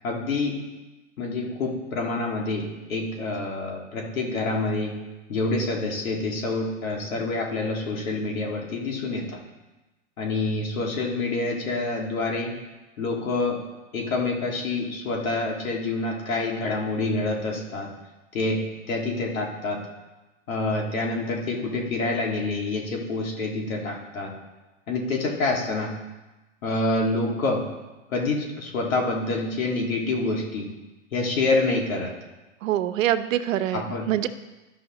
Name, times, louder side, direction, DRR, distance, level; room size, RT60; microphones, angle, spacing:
voice 1, 0.0-0.6 1.2-4.9 5.3-9.4 10.2-12.5 13.0-13.6 13.9-17.9 18.3-19.8 20.5-24.3 24.9-25.9 26.6-27.6 28.1-30.7 31.1-32.1 33.7-34.1, left 2 dB, 90° left, 0 dB, 2.0 m, -27 dB
voice 2, 32.6-34.3, right 12 dB, 75° right, 12 dB, 0.7 m, -25 dB
12.5 x 5.6 x 2.9 m, 1.1 s
hypercardioid pair, 145°, 40 cm